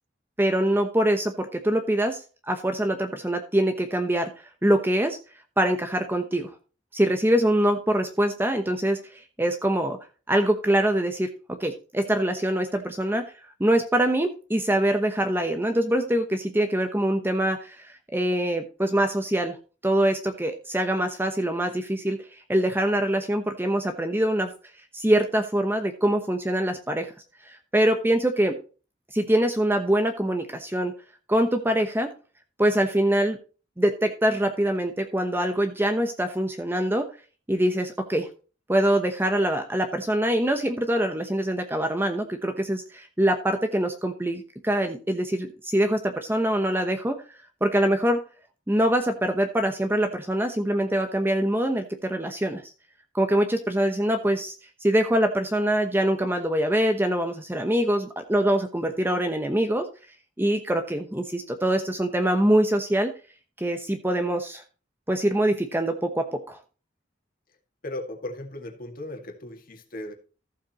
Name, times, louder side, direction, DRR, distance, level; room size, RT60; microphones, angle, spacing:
voice 1, 0.4-4.3 4.6-5.2 5.6-6.5 6.9-9.0 9.4-10.0 10.3-13.2 13.6-19.6 19.8-24.5 24.9-27.1 27.5-28.6 29.1-30.9 31.3-32.1 32.6-33.4 33.8-37.1 37.5-38.3 38.7-47.2 47.6-48.2 48.7-52.6 53.1-54.5 54.8-59.9 60.4-63.1 63.6-64.6 65.1-66.6, right 1 dB, 10° right, 1.0 m, -24 dB
voice 2, 67.8-70.1, left 1 dB, 50° left, 2.1 m, -36 dB
14.5 x 7.4 x 3.0 m
head